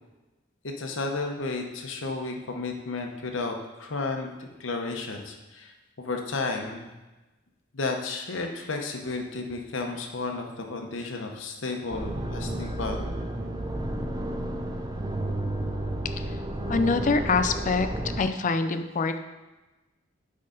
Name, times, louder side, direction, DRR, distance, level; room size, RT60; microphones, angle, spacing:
voice 1, 0.6-6.9 7.7-13.0, left 3 dB, 75° left, 2 dB, 0.9 m, -33 dB
sound 1, 11.9-18.2, right 1 dB, 20° right, 0.6 m, -31 dB
voice 2, 16.7-17.9 18.2-19.2, left 4 dB, 40° left, 9 dB, 0.4 m, -24 dB
9.7 x 3.8 x 3.8 m, 1.1 s
head